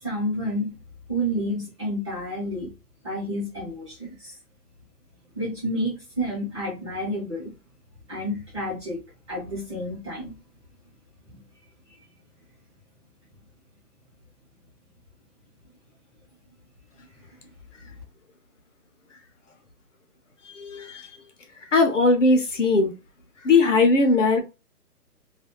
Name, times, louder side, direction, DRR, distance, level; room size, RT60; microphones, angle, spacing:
voice 1, 0.0-0.7 1.1-2.7 3.0-4.3 5.3-7.5 8.1-9.0 9.3-10.3 11.3-11.4, equal, 20° right, 0.9 m, -30 dB
voice 2, 20.4-21.1 21.7-22.9 23.4-24.4, left 3 dB, 55° left, 0.6 m, -19 dB
2.4 x 2.2 x 2.8 m
hypercardioid pair, 165°, 46 cm